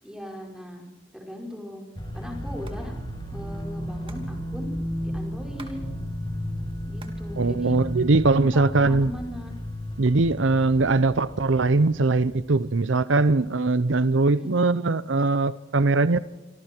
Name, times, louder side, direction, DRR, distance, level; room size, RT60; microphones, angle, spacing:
voice 1, 0.0-1.8 2.1-2.9 3.3-4.7 5.0-5.8 6.9-7.8 8.3-9.5 14.4-14.5, left 1 dB, 5° right, 5.2 m, -38 dB
sound 1, 1.9-12.3, equal, 25° left, 7.6 m, -34 dB
Hands, 2.7-2.8 3.1-3.2 3.4-5.8 6.1-7.3 7.6-8.4 9.0-9.6, right 3 dB, 30° right, 3.0 m, -50 dB
voice 2, 7.4-9.1 10.0-16.2, right 3 dB, 75° right, 0.7 m, -21 dB
27.5 x 26.0 x 4.6 m
head